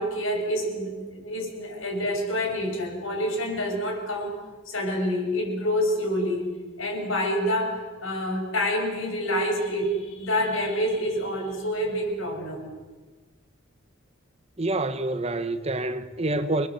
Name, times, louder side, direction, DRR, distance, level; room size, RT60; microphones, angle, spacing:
voice 1, 0.0-4.3 4.7-6.4 6.8-12.7, equal, 80° left, 7.2 m, -27 dB
voice 2, 14.6-16.7, right 2 dB, 30° right, 1.2 m, -27 dB
30.0 x 21.0 x 7.9 m
head